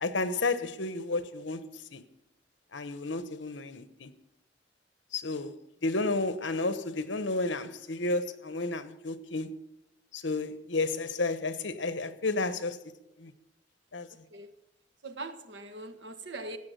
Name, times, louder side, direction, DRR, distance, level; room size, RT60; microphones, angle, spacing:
voice 1, 0.0-2.0 2.7-4.1 5.1-9.6 10.1-12.8 13.2-13.3 13.9-14.1, left 3 dB, 75° left, 1.0 m, -32 dB
voice 2, 14.1-14.5 15.0-16.6, right 2 dB, 70° right, 1.4 m, -41 dB
16.5 x 8.6 x 6.7 m
head